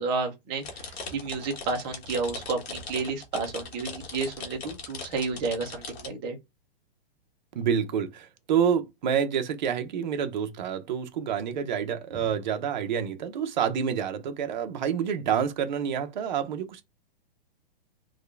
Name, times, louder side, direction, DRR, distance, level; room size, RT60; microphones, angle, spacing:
voice 1, 0.0-6.4 12.1-12.2, right 4 dB, 15° right, 0.5 m, -31 dB
sound 1, 0.6-6.1, left 4 dB, 85° left, 1.4 m, -40 dB
voice 2, 7.5-16.8, right 8 dB, 50° right, 0.8 m, -28 dB
3.6 x 2.3 x 3.2 m
hypercardioid pair, 165°, 30 cm